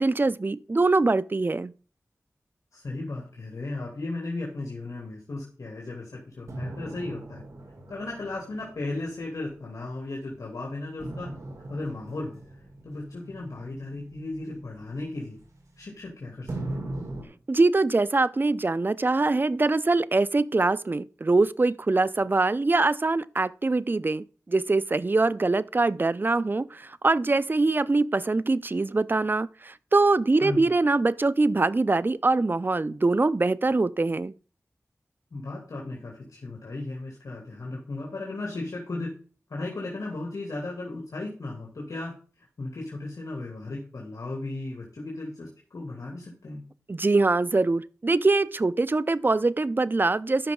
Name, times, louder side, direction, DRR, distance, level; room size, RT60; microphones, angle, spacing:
voice 1, 0.0-1.7 17.5-34.3 46.9-50.5, right 3 dB, 35° right, 0.5 m, -23 dB
voice 2, 2.7-7.4 7.9-11.3 11.7-12.4 12.8-15.4 15.8-16.8 30.4-30.6 35.3-39.1 39.5-42.1 42.6-46.6, left 2 dB, 80° left, 2.7 m, -35 dB
sound 1, 6.5-10.2 11.0-16.0 16.5-17.2, right 1 dB, 70° right, 2.7 m, -40 dB
13.0 x 5.8 x 3.8 m
wide cardioid pair, 60°, 6 cm